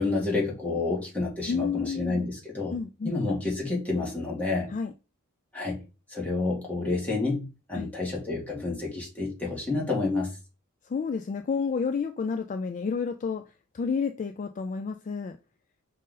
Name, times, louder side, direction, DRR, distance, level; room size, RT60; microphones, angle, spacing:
voice 1, 0.0-2.7 3.1-4.7 5.5-5.8 6.1-10.3, left 3 dB, 5° left, 1.7 m, -29 dB
voice 2, 1.5-2.2 2.7-3.2 4.7-4.9 7.7-7.9 10.9-13.4 13.7-15.4, left 5 dB, 35° left, 0.3 m, -30 dB
5.2 x 2.6 x 3.8 m
head